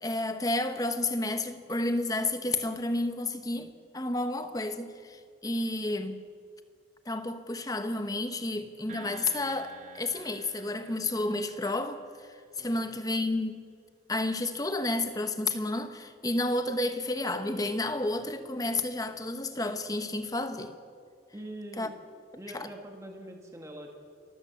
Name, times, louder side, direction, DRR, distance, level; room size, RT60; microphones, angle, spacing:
voice 1, 0.0-6.2 7.1-12.0 12.3-13.6 14.1-20.7 21.8-21.9 22.5-22.7, left 2 dB, 20° left, 1.2 m, -31 dB
sound 1, 8.9-12.4, right 5 dB, 45° right, 1.6 m, -50 dB
voice 2, 12.6-12.9 18.0-18.1 21.3-21.9 22.4-24.0, right 1 dB, 15° right, 1.7 m, -44 dB
28.0 x 15.5 x 7.1 m
head